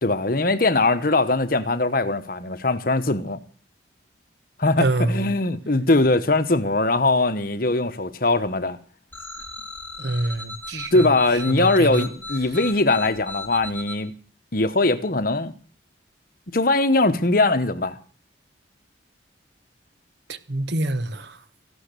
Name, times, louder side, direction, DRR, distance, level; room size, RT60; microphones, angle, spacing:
voice 1, 0.0-3.4 4.6-8.8 10.7-14.1 14.5-15.5 16.5-18.0, left 2 dB, 50° left, 1.1 m, -21 dB
voice 2, 4.8-5.3 10.0-12.1 20.3-21.4, right 2 dB, 65° right, 1.2 m, -26 dB
sound 1, 9.1-14.0, left 2 dB, 10° left, 3.9 m, -36 dB
15.0 x 12.0 x 6.8 m
head